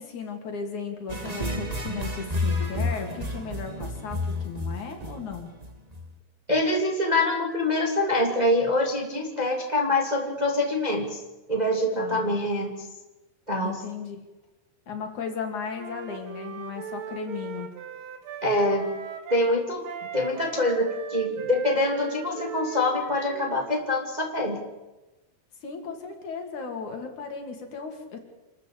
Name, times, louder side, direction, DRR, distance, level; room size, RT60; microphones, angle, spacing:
voice 1, 0.0-5.5 12.0-12.3 13.6-14.3 14.9-17.7 20.0-20.1 25.6-28.2, left 5 dB, 60° left, 4 dB, 4.0 m, -36 dB
sound 1, 1.1-6.1, left 2 dB, 35° right, 0.6 m, -30 dB
voice 2, 6.5-11.2 11.5-12.7 13.5-13.8 18.4-18.9 19.3-19.9 20.1-24.6, left 1 dB, 15° right, 1 dB, 2.2 m, -25 dB
Wind instrument woodwind instrument, 15.8-19.6 19.8-23.9, right 8 dB, 75° right, 3.3 m, -38 dB
27.0 x 14.0 x 8.8 m, 1.1 s
omnidirectional pair, 4.0 m